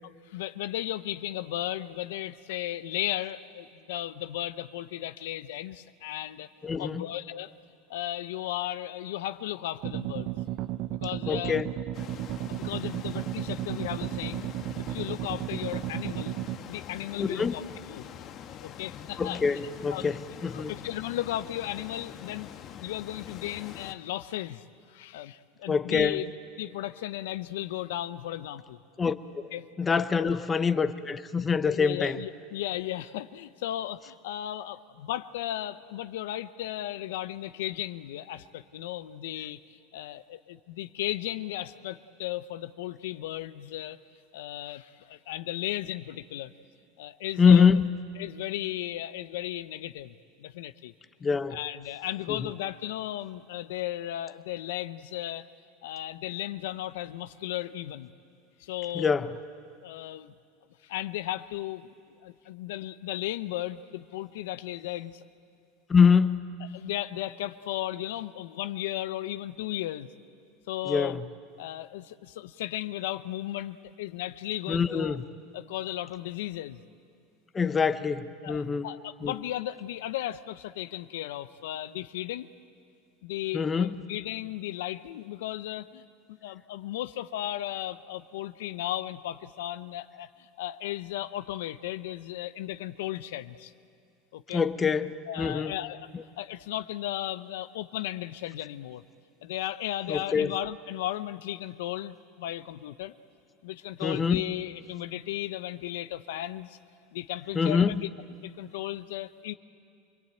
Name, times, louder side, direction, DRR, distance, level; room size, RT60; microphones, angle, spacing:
voice 1, 0.3-6.5 6.8-7.5 7.9-10.4 11.0-11.6 12.4-14.5 14.8-16.3 16.7-17.6 17.9-18.1 18.6-19.6 19.9-20.1 20.5-22.5 22.8-24.6 24.9-26.3 26.6-28.8 29.5-29.6 30.2-30.4 31.6-39.6 39.9-44.0 44.3-46.5 47.0-47.7 48.2-50.1 50.4-50.9 51.5-55.5 55.8-58.1 58.6-59.1 59.8-60.3 60.8-61.9 62.2-65.2 66.7-70.1 70.7-71.2 71.6-75.2 75.5-76.8 78.4-82.5 83.2-86.0 86.3-93.7 94.3-94.6 95.3-96.1 96.4-99.0 99.4-103.1 103.6-106.8 107.1-108.1 108.4-109.5, left 14 dB, 80° left, 0.7 m, -35 dB
voice 2, 6.6-7.0 11.3-11.7 17.2-17.6 19.2-20.7 25.7-26.2 29.0-29.4 29.8-32.2 47.4-47.9 51.2-51.6 52.3-52.5 58.9-59.3 65.9-66.5 70.9-71.2 74.7-75.2 77.5-78.9 79.2-79.3 83.5-83.9 94.5-95.7 96.1-96.2 100.1-100.5 104.0-104.4 107.5-108.0, left 6 dB, 20° left, 0.9 m, -25 dB
sound 1, 9.8-16.6, right 14 dB, 50° right, 0.7 m, -34 dB
sound 2, 11.9-23.9, left 9 dB, 45° left, 1.3 m, -44 dB
25.5 x 21.0 x 9.0 m
supercardioid pair, 120°, 0 cm